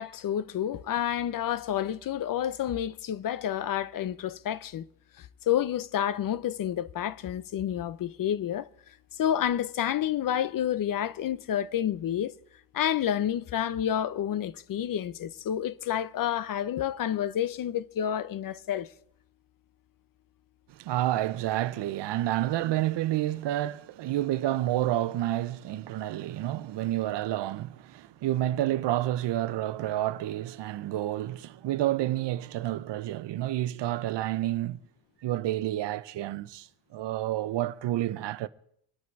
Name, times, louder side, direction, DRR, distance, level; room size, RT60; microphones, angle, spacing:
voice 1, 0.0-4.9 5.2-8.7 9.1-12.3 12.7-18.9, left 10 dB, 50° left, 0.6 m, -29 dB
voice 2, 20.8-34.8 35.2-38.5, right 14 dB, 75° right, 0.7 m, -29 dB
25.0 x 8.6 x 4.6 m
cardioid pair, 135°, 43 cm